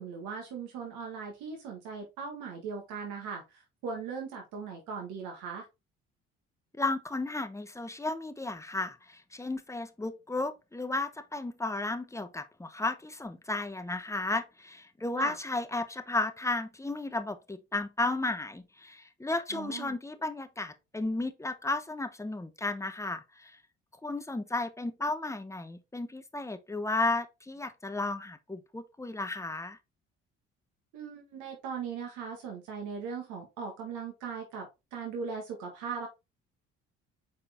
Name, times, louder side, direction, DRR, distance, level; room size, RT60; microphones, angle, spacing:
voice 1, 0.0-5.6 15.2-15.3 19.5-20.0 30.9-36.1, right 5 dB, 75° right, 1.7 m, -39 dB
voice 2, 6.8-23.6 24.0-29.8, left 2 dB, 10° left, 1.1 m, -34 dB
6.1 x 4.3 x 3.6 m
hypercardioid pair, 65°, 30 cm